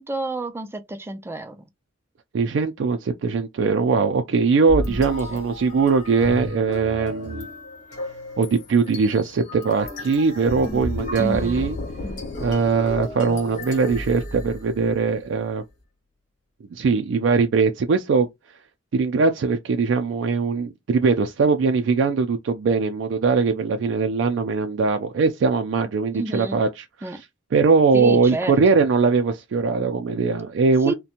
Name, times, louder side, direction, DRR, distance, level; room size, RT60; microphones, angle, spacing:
voice 1, 0.0-1.6 5.3-5.4 11.2-11.7 26.1-26.6 27.0-27.2 27.9-28.6 30.8-30.9, right 1 dB, 15° right, 0.4 m, -29 dB
voice 2, 2.3-7.5 8.4-11.8 12.4-15.6 16.7-18.3 18.9-27.1 27.5-30.9, right 4 dB, 85° right, 0.4 m, -21 dB
sound 1, 4.7-15.0, left 1 dB, 40° left, 1.2 m, -33 dB
sound 2, 11.1-14.9, left 4 dB, 70° left, 0.3 m, -39 dB
2.8 x 2.2 x 2.5 m
head